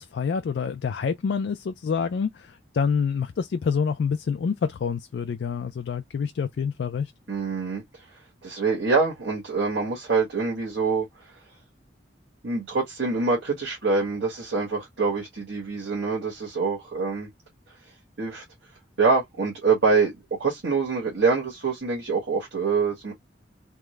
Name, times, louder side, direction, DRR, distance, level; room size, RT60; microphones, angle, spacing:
voice 1, 0.0-7.1, left 6 dB, 65° left, 0.3 m, -27 dB
voice 2, 7.3-7.8 8.4-11.1 12.4-17.3 18.2-18.4 19.0-20.1 20.4-23.1, right 4 dB, 85° right, 1.4 m, -25 dB
3.5 x 2.0 x 3.1 m
head